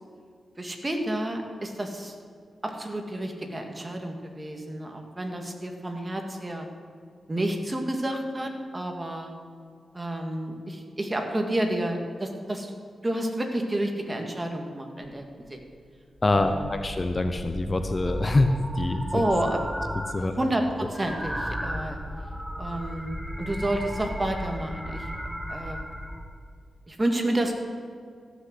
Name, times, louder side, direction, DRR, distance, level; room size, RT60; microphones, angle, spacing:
voice 1, 0.6-2.1 2.6-6.7 7.3-9.3 9.9-12.7 13.0-15.6 16.4-16.8 19.1-19.6 20.2-22.0 22.6-25.1 25.5-25.8 26.9-27.5, right 1 dB, 25° right, 3 dB, 2.0 m, -30 dB
sound 1, 15.1-15.2 15.5-15.8 16.2-20.3 20.5-26.2, equal, 5° right, 1.5 m, -35 dB
voice 2, 16.2-19.2 20.1-20.3, left 2 dB, 35° left, 7 dB, 0.8 m, -25 dB
15.0 x 6.5 x 7.7 m, 2.1 s
cardioid pair, 60°, 0 cm